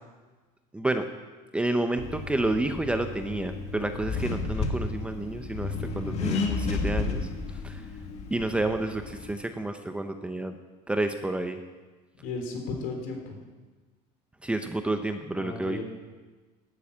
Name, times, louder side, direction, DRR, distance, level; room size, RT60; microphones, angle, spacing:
voice 1, 0.7-1.1 1.5-7.9 8.3-10.5 10.9-11.6 14.4-15.8, right 2 dB, 5° right, 7 dB, 0.7 m, -30 dB
Accelerating revving vroom, 2.0-9.3, left 4 dB, 40° left, 1.9 m, -32 dB
voice 2, 12.2-13.4 15.3-15.8, left 3 dB, 65° left, 3 dB, 3.7 m, -35 dB
12.5 x 9.4 x 8.7 m, 1.3 s
cardioid pair, 150°, 16 cm